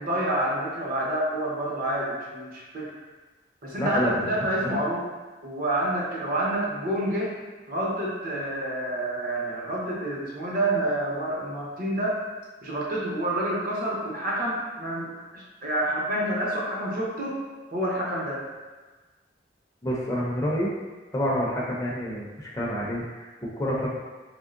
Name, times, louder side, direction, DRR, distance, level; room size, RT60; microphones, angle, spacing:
voice 1, 0.0-2.9 3.6-5.1 5.4-7.4 7.7-12.2 12.6-17.4 17.7-18.4, right 1 dB, 50° right, -4 dB, 0.8 m, -28 dB
voice 2, 3.8-4.2 4.6-4.8 19.8-20.7 21.1-23.9, equal, 15° left, -5 dB, 0.4 m, -28 dB
3.6 x 3.1 x 2.4 m, 1.3 s
head